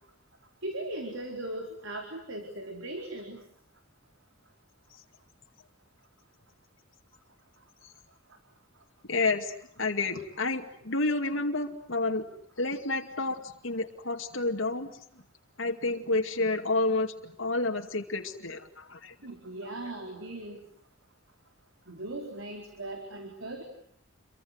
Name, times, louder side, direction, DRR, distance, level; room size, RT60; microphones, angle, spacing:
voice 1, 0.6-3.4 19.2-20.7 21.9-23.6, right 1 dB, 90° right, 3 dB, 4.4 m, -38 dB
voice 2, 9.1-12.2 12.6-14.9 15.6-19.1 19.6-19.7, left 3 dB, 80° left, 3 dB, 2.4 m, -30 dB
29.5 x 24.0 x 8.0 m, 0.65 s
head